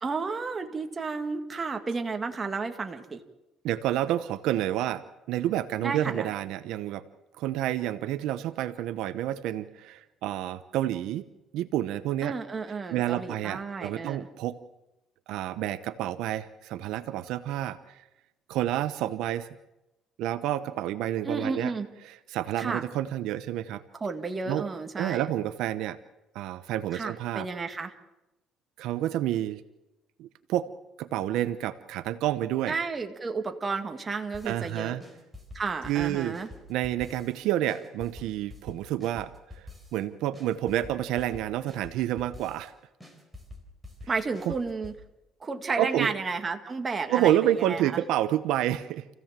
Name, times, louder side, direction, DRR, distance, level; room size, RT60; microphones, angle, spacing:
voice 1, 0.0-3.2 5.8-6.3 12.2-14.3 21.2-21.9 22.6-22.8 24.0-25.3 26.9-27.9 32.7-35.0 35.5-36.5 44.1-44.9 45.4-48.0, right 4 dB, 25° right, 5 dB, 1.9 m, -32 dB
voice 2, 3.6-5.0 5.3-7.0 7.4-11.2 11.5-12.3 12.9-14.6 15.3-18.0 18.5-19.5 20.2-21.7 22.3-23.8 24.5-24.6 25.0-26.0 26.3-27.5 28.8-29.6 30.2-30.7 31.0-32.8 34.4-35.0 35.9-36.4 36.7-39.7 39.9-42.7 44.5-44.6 45.8-46.1 47.1-49.1, right 13 dB, 80° right, 12 dB, 0.9 m, -29 dB
sound 1, 34.3-34.7 35.0-37.4 37.7-40.0 40.3-42.7 43.0-45.0, left 2 dB, ahead, 3.9 m, -47 dB
28.0 x 16.0 x 7.5 m, 0.95 s
cardioid pair, 140°, 0 cm